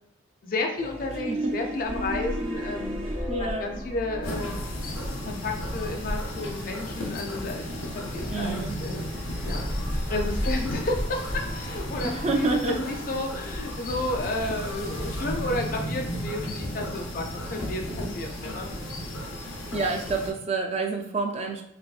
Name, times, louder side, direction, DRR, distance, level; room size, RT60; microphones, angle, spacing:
voice 1, 0.4-3.0 3.4-4.6 5.2-9.1 9.4-9.7 10.1-18.7, left 2 dB, 40° left, 3 dB, 0.4 m, -32 dB
sound 1, 0.8-4.7, right 1 dB, 80° right, 0.6 m, -34 dB
sound 2, 1.8-15.6, equal, 50° right, 1.0 m, -36 dB
voice 2, 3.3-3.8 8.3-8.8 12.0-12.8 19.7-21.6, right 3 dB, 30° right, 2 dB, 0.3 m, -28 dB
sound 3, 4.2-20.3, equal, 85° left, 0.7 m, -34 dB
3.3 x 3.0 x 2.4 m, 0.79 s
head